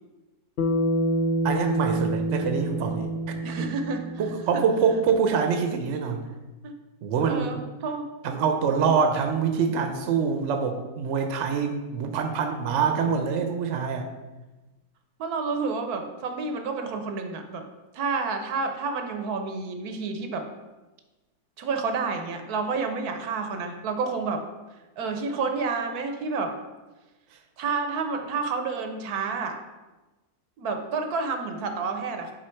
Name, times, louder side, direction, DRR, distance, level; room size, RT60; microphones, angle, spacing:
Bass guitar, 0.6-5.0, right 1 dB, 80° left, 0.4 m, -27 dB
voice 1, 1.4-3.1 4.2-6.2 7.0-7.6 8.2-14.1, right 6 dB, 55° right, 5 dB, 0.9 m, -25 dB
voice 2, 3.3-4.0 4.5-4.6 6.6-6.7 7.2-7.6 7.8-8.1 15.2-17.6 17.9-20.5 21.6-24.4 25.0-26.5 27.6-29.6 30.6-32.3, right 4 dB, 75° right, 6 dB, 1.2 m, -29 dB
7.6 x 4.0 x 4.5 m, 1.1 s
omnidirectional pair, 1.7 m